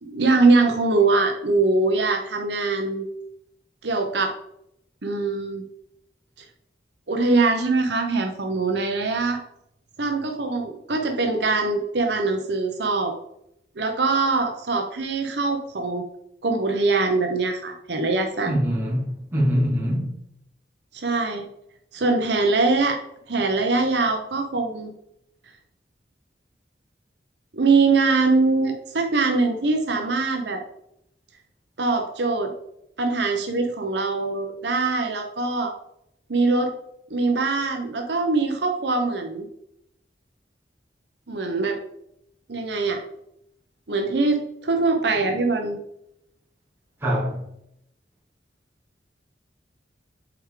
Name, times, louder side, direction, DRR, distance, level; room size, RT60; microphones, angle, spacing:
voice 1, 0.0-3.0 3.8-4.3 5.0-5.6 7.1-9.4 10.0-13.1 13.8-16.0 16.4-18.6 20.9-21.4 21.9-23.0 23.3-24.9 27.5-30.6 31.8-32.5 33.0-35.7 36.3-36.7 37.1-39.5 41.3-41.8 42.5-43.0 43.9-45.8, right 3 dB, 70° right, 0.8 m, -22 dB
voice 2, 18.5-20.1 47.0-47.4, equal, 15° right, 2.6 m, -23 dB
7.8 x 4.7 x 3.8 m
head